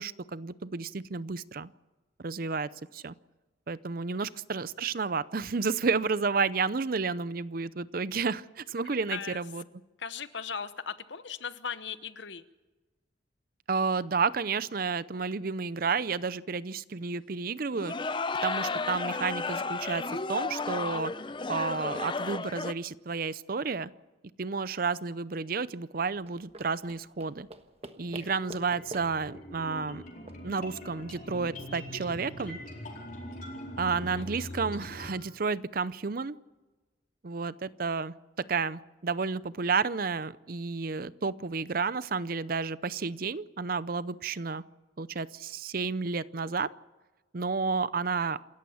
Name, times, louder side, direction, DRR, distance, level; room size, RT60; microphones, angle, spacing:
voice 1, 0.0-1.7 2.2-3.1 3.7-9.6 13.7-17.9 18.4-20.0 20.3-21.1 21.5-23.9 24.4-27.5 28.0-30.0 30.4-32.6 33.8-36.4 37.2-44.6 45.0-46.7 47.3-48.4, right 4 dB, 50° right, 17 dB, 0.6 m, -31 dB
voice 2, 8.8-9.4 10.0-12.4, left 6 dB, 70° left, 13 dB, 1.0 m, -38 dB
sound 1, 17.7-22.7, left 3 dB, 25° left, 0.6 m, -33 dB
sound 2, 26.1-31.3, right 2 dB, 30° right, 1.3 m, -48 dB
sound 3, 28.0-35.1, left 1 dB, 45° left, 4.4 m, -42 dB
28.0 x 14.0 x 7.1 m, 1.2 s
head